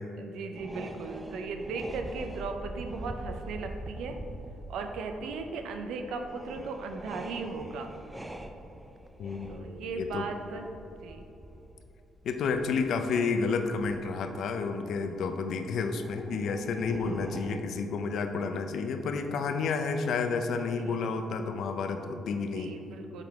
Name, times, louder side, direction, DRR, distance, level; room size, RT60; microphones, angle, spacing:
voice 1, 0.2-4.2 4.7-7.9 9.5-10.7 11.0-11.2 16.9-17.1 20.7-21.0 22.4-23.2, right 4 dB, 85° right, 5 dB, 0.5 m, -37 dB
sound 1, 0.5-14.1 14.7-15.1 15.8-17.6, right 1 dB, 10° right, 0.4 m, -44 dB
voice 2, 9.2-9.6 10.0-10.3 12.2-22.7, left 4 dB, 70° left, 6 dB, 0.5 m, -30 dB
8.9 x 3.8 x 3.5 m, 3.0 s
cardioid pair, 90°, 0 cm